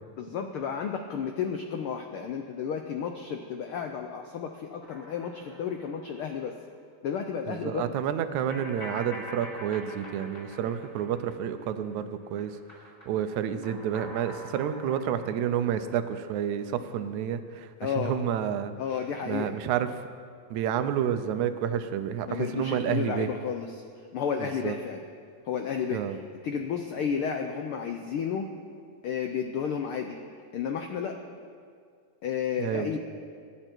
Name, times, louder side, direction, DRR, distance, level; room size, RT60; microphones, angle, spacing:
voice 1, 0.2-6.5 7.0-8.0 17.8-18.1 18.8-19.5 22.3-23.7 24.1-25.0 25.5-26.0 26.4-28.4 29.0-30.2 30.5-31.1 32.2-33.0, left 7 dB, 75° left, 4 dB, 1.2 m, -32 dB
sound 1, 4.8-6.5 6.8-6.9 8.5-12.0 12.2-16.5, left 1 dB, 20° left, 4.9 m, -45 dB
voice 2, 7.5-12.6 13.1-18.7 19.3-19.9 20.5-23.3 24.4-24.8 25.9-26.2 32.6-33.0, right 9 dB, 80° right, 10 dB, 2.1 m, -30 dB
24.5 x 10.0 x 4.5 m, 2.2 s
omnidirectional pair, 3.3 m